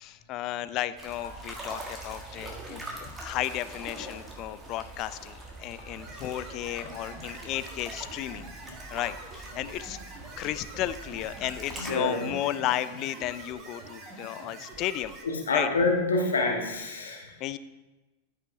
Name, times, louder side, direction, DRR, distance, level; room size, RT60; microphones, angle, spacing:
voice 1, 0.0-8.5 8.9-10.0 10.4-15.2 15.5-15.7 17.4-17.6, left 13 dB, 40° left, 15 dB, 0.3 m, -33 dB
sound 1, 1.0-11.9, right 2 dB, 10° right, 1.5 m, -43 dB
sound 2, 5.9-15.2, right 2 dB, 30° right, 1.4 m, -46 dB
voice 2, 11.8-12.3 15.2-17.3, left 3 dB, 70° left, 0 dB, 1.3 m, -27 dB
13.5 x 5.5 x 2.6 m, 1.2 s
figure-of-eight pair, 90°, 0 cm